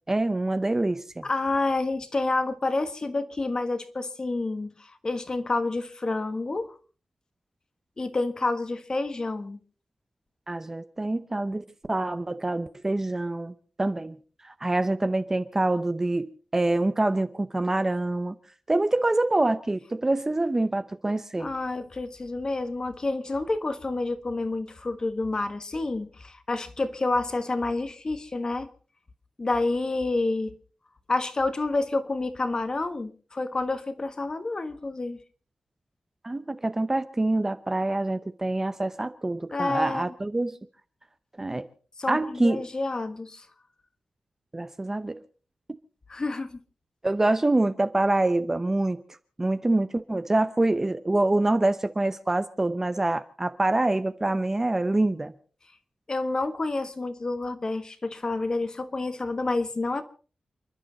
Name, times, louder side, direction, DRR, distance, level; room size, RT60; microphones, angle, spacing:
voice 1, 0.1-1.2 10.5-13.5 13.8-14.2 14.4-18.3 18.7-21.5 36.2-40.6 41.4-41.7 42.1-42.6 44.5-45.2 47.0-49.0 49.4-55.3, right 2 dB, 20° right, 0.7 m, -25 dB
voice 2, 1.2-6.7 8.0-9.6 21.4-28.7 29.4-30.5 31.1-35.2 39.5-40.1 42.0-43.5 46.1-46.6 56.1-60.0, left 2 dB, 30° left, 1.4 m, -29 dB
29.5 x 11.5 x 4.0 m
wide cardioid pair, 165°, 2 cm